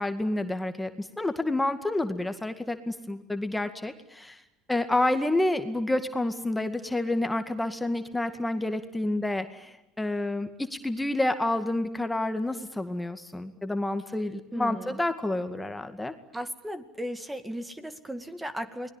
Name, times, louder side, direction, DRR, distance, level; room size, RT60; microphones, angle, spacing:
voice 1, 0.0-4.4 4.7-16.1, left 1 dB, 10° left, 8 dB, 2.1 m, -29 dB
voice 2, 14.5-15.0 16.3-18.9, equal, 10° right, 11 dB, 2.2 m, -36 dB
29.0 x 21.0 x 9.1 m, 0.91 s
hypercardioid pair, 75°, 0 cm